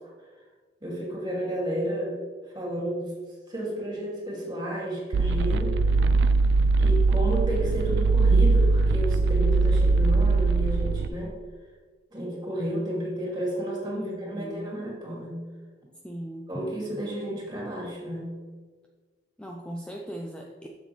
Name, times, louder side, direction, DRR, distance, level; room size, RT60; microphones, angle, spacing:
voice 1, 0.8-2.2 2.5-3.1 3.5-5.9 6.8-11.4 12.1-15.4 16.5-18.3, equal, 25° right, -3 dB, 2.2 m, -32 dB
sound 1, 5.1-11.1, right 3 dB, 75° right, 0.3 m, -21 dB
voice 2, 13.9-14.8 16.0-16.5 19.4-20.7, equal, 5° left, 0 dB, 0.4 m, -38 dB
7.6 x 7.1 x 3.1 m, 1.5 s
head